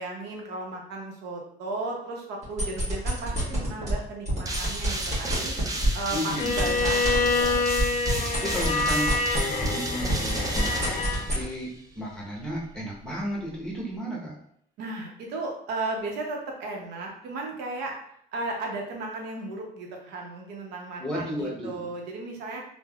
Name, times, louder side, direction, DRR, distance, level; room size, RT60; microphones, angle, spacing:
voice 1, 0.0-5.5 5.9-7.6 14.8-18.0 18.3-22.6, right 2 dB, 85° right, 1 dB, 0.7 m, -35 dB
sound 1, 2.4-3.9 4.3-9.8 10.0-11.4, right 1 dB, 40° right, 1.3 m, -29 dB
sound 2, 4.4-11.7, right 2 dB, 20° right, 0.4 m, -33 dB
voice 2, 6.1-6.6 7.2-7.3 8.3-9.1 9.7-10.9 11.1-14.3 21.0-21.9, equal, 5° left, -4 dB, 0.8 m, -33 dB
Bowed string instrument, 6.4-11.3, left 3 dB, 50° left, 0.4 m, -27 dB
3.3 x 2.1 x 2.3 m, 0.69 s
cardioid pair, 110°, 17 cm